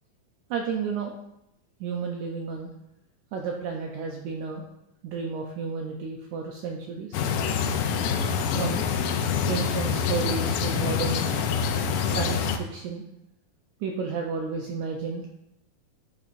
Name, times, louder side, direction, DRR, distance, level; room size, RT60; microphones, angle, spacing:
voice 1, 0.5-1.1 1.8-2.7 3.3-4.6 5.0-7.1 8.5-8.9 9.5-11.3 12.0-13.0 13.8-15.4, right 5 dB, 90° right, 1 dB, 1.7 m, -32 dB
sound 1, 7.1-12.6, left 6 dB, 80° left, 2.2 m, -26 dB
10.5 x 4.5 x 2.5 m, 0.85 s
omnidirectional pair, 4.1 m